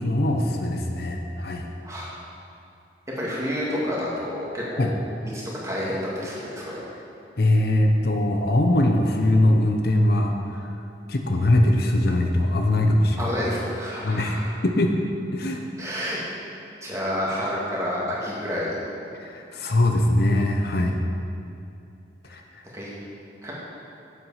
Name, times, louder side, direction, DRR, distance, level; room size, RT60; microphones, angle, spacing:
voice 1, 0.0-1.7 4.8-4.9 7.4-10.7 11.1-13.3 14.0-14.9 15.3-15.6 19.2-21.0 22.3-22.6, left 1 dB, 55° left, 3 dB, 0.7 m, -21 dB
voice 2, 3.2-5.0 5.3-6.9 13.2-14.5 15.8-16.2 16.8-18.8 22.7-22.9 23.4-23.5, equal, 15° right, -6 dB, 2.0 m, -29 dB
8.1 x 7.7 x 5.6 m, 2.6 s
head